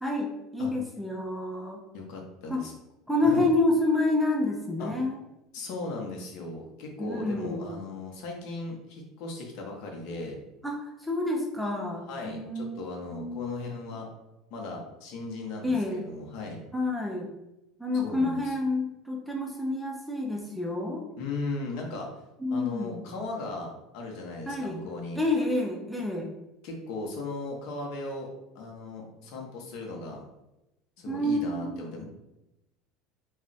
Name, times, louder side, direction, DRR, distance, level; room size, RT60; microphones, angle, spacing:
voice 1, 0.0-1.8 2.5-2.7 3.1-5.2 7.0-7.7 10.6-13.5 15.6-16.0 16.7-17.3 17.8-21.0 22.4-23.0 24.5-24.8 25.1-26.3 31.1-31.8, left 2 dB, ahead, -1 dB, 0.3 m, -28 dB
voice 2, 1.9-2.7 3.2-3.5 4.8-4.9 5.5-10.4 12.1-14.1 14.5-16.7 18.0-18.5 21.2-22.1 22.5-25.2 26.6-28.3 28.5-30.2 31.0-32.0, left 3 dB, 60° left, 1 dB, 0.7 m, -37 dB
2.3 x 2.0 x 3.8 m, 0.93 s
cardioid pair, 150°, 0 cm